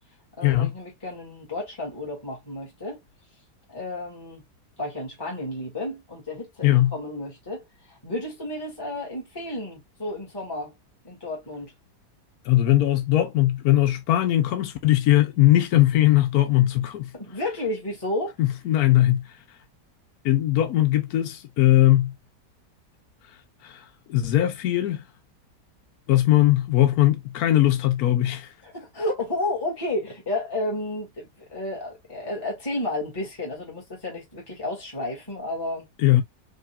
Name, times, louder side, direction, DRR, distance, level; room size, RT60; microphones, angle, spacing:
voice 1, 0.4-3.0 3.7-4.4 4.8-10.7 11.0-11.7 17.1-18.4 28.6-35.9, left 1 dB, 15° left, 1.9 m, -32 dB
voice 2, 6.6-6.9 12.4-17.1 18.4-19.6 20.2-22.1 23.3-25.1 26.1-28.5 36.0-36.2, left 14 dB, 65° left, 1.0 m, -20 dB
5.1 x 2.8 x 2.3 m
omnidirectional pair, 1.9 m